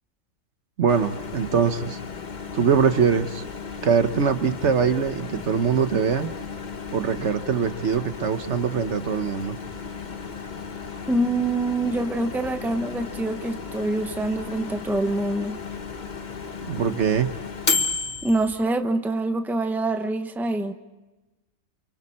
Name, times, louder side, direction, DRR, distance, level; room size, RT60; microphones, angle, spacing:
voice 1, 0.8-2.0 2.5-3.4 3.8-6.3 6.9-9.6 16.6-17.3, right 6 dB, 65° right, 10 dB, 1.3 m, -22 dB
Microwave oven, 0.9-18.6, left 5 dB, 40° left, 1.1 m, -34 dB
voice 2, 11.1-15.6 18.2-20.7, right 2 dB, ahead, 7 dB, 0.9 m, -25 dB
29.0 x 28.5 x 4.3 m, 1.1 s
omnidirectional pair, 1.3 m